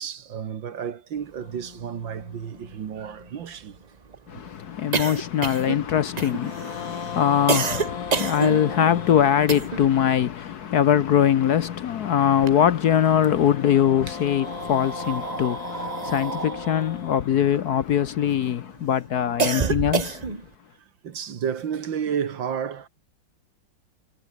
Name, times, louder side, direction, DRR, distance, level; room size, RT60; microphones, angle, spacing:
voice 1, 0.0-3.8 4.3-4.4 8.2-8.4 9.5-9.7 14.1-14.2 16.0-16.1 19.2-19.3 21.0-22.9, right 8 dB, 70° right, 2.3 m, -32 dB
sound 1, 1.4-3.8 6.0-10.2 12.3-18.5, left 6 dB, 45° left, 1.9 m, -39 dB
sound 2, 1.8-1.9 2.1-2.2 2.5-10.0 10.3-11.9 12.2-13.2 13.9-18.4 18.8-20.5, right 5 dB, 40° right, 0.5 m, -30 dB
voice 2, 4.3-20.4, left 9 dB, 60° left, 1.2 m, -22 dB
omnidirectional pair, 2.2 m